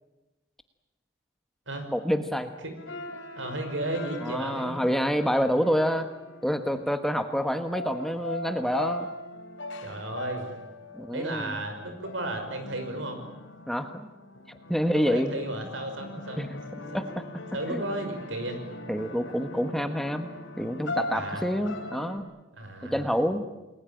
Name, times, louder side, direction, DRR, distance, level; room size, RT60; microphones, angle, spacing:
voice 1, 1.9-2.5 4.2-6.1 6.4-9.1 10.9-11.5 13.7-14.1 14.5-15.3 16.4-16.6 16.9-17.2 17.7-17.8 18.9-20.3 20.6-22.2 22.8-23.5, equal, ahead, 7 dB, 1.2 m, -27 dB
sound 1, 2.8-22.2, left 2 dB, 80° left, 3.6 m, -40 dB
voice 2, 3.4-4.8 9.8-10.5 11.1-13.2 14.9-16.4 16.8-17.0 17.5-18.6 21.1-21.4 22.6-23.1, right 1 dB, 80° right, 7 dB, 5.8 m, -34 dB
28.5 x 21.0 x 8.9 m, 1.0 s
head